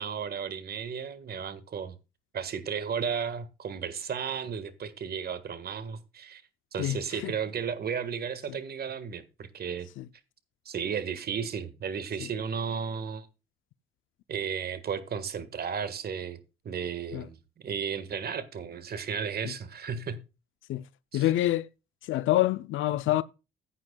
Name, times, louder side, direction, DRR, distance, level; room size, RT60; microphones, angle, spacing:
voice 1, 0.0-1.9 2.3-6.4 6.7-9.9 10.6-13.3 14.3-16.4 16.6-20.2 21.1-21.2, right 6 dB, 50° right, 1.6 m, -34 dB
voice 2, 21.1-21.7 22.0-23.2, left 15 dB, 80° left, 0.6 m, -26 dB
15.5 x 9.1 x 2.3 m
cardioid pair, 90°, 20 cm